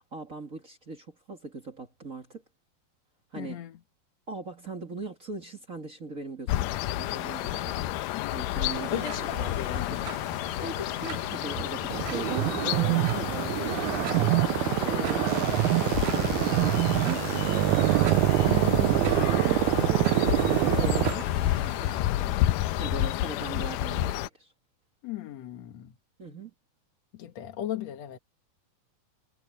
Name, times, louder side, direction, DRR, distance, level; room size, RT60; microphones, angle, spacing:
voice 1, 0.0-2.4 3.3-3.6 4.3-8.0 8.3-10.0 10.6-14.3 14.8-17.7 18.0-24.5 26.2-26.5, right 3 dB, 30° right, 1.9 m, -40 dB
voice 2, 3.4-3.8 8.1-8.5 8.9-10.1 18.5-18.9 25.0-25.9 27.1-28.2, left 12 dB, 60° left, 2.2 m, -36 dB
sound 1, 6.5-24.3, left 15 dB, 80° left, 2.2 m, -30 dB
sound 2, 8.7-22.0, right 7 dB, 55° right, 2.8 m, -42 dB
sound 3, 11.9-21.1, right 18 dB, 85° right, 1.7 m, -25 dB
omnidirectional pair, 4.1 m